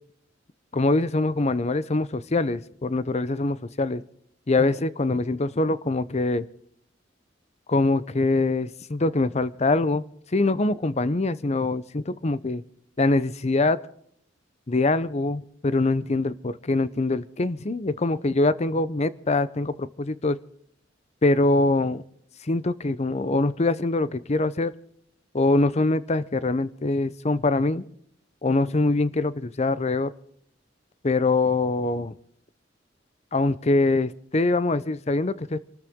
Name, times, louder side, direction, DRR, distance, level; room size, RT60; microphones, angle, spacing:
voice 1, 0.7-4.0 4.5-6.5 7.7-10.0 10.3-12.6 13.0-13.8 14.7-20.4 21.2-22.0 22.4-24.7 25.3-27.8 28.4-30.1 31.0-32.1 33.3-35.6, left 2 dB, 35° left, 16 dB, 0.7 m, -23 dB
26.5 x 13.5 x 3.7 m, 0.66 s
head